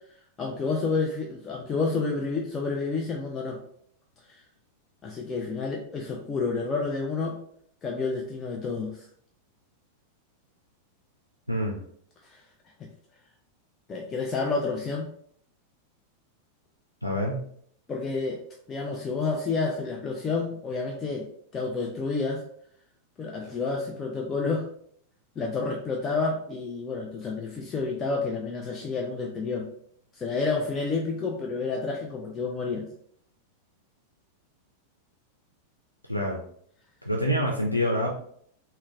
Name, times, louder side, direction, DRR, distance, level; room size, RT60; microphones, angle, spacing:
voice 1, 0.4-3.6 4.3-4.4 5.0-7.4 7.8-9.0 12.2-12.4 12.8-12.9 13.9-15.1 17.9-18.4 18.7-21.3 21.5-22.4 23.2-24.7 25.4-29.7 30.1-32.9, left 4 dB, 25° left, 1 dB, 0.4 m, -29 dB
voice 2, 11.5-11.8 17.0-17.4 36.1-36.4 37.0-38.1, equal, 90° right, 0 dB, 0.4 m, -26 dB
3.7 x 2.1 x 2.5 m, 0.64 s
figure-of-eight pair, 90°, 0 cm